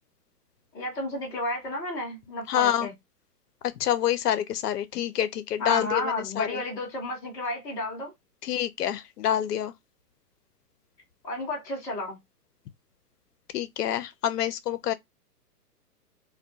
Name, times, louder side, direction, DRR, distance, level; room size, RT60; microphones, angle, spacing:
voice 1, 0.7-2.9 5.6-8.1 11.2-12.2, left 2 dB, 10° left, 0.6 m, -31 dB
voice 2, 2.5-2.9 3.8-6.6 8.4-9.7 13.5-14.9, left 11 dB, 75° left, 0.6 m, -27 dB
2.2 x 2.2 x 2.6 m
hypercardioid pair, 135°, 48 cm